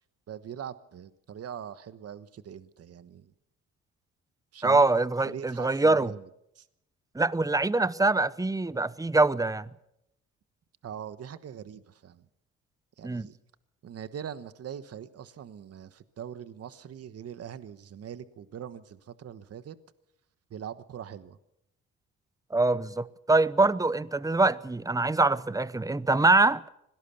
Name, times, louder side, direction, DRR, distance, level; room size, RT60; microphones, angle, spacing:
voice 1, 0.3-3.3 4.5-4.9 5.2-6.3 6.5-6.7 10.8-12.3 13.0-13.4 13.8-19.8 20.5-21.4, right 9 dB, 55° right, 1.2 m, -42 dB
voice 2, 4.6-6.1 7.1-9.7 13.0-13.3 22.5-26.7, right 2 dB, 10° right, 0.9 m, -24 dB
25.0 x 18.0 x 7.0 m
cardioid pair, 90°, 30 cm